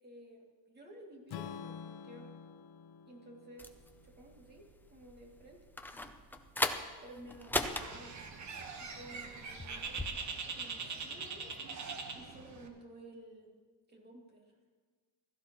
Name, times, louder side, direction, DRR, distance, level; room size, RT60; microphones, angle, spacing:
voice 1, 0.0-2.3 3.1-3.7 4.0-4.7 4.9-5.6 6.7-8.1 8.4-11.6 12.1-13.5 13.9-14.5, right 1 dB, 20° right, -1 dB, 2.7 m, -54 dB
Strum, 1.3-5.5, left 8 dB, 55° left, 0.7 m, -49 dB
sound 1, 3.6-10.1, left 2 dB, 5° left, 0.5 m, -40 dB
Bird, 7.6-12.7, right 5 dB, 40° right, 1.3 m, -42 dB
16.0 x 14.5 x 3.1 m, 1.5 s
cardioid pair, 140°, 45 cm